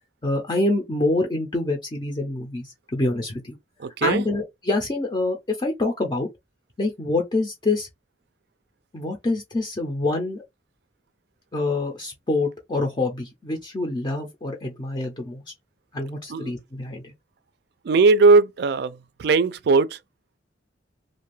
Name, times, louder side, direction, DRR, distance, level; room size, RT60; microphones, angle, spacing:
voice 1, 0.2-3.6 4.0-6.3 6.8-7.9 8.9-10.4 11.5-15.4 15.9-17.1, left 2 dB, 25° left, 0.5 m, -26 dB
voice 2, 3.8-4.2 16.3-16.5 17.8-20.0, right 4 dB, 60° right, 0.4 m, -19 dB
2.5 x 2.3 x 3.1 m
head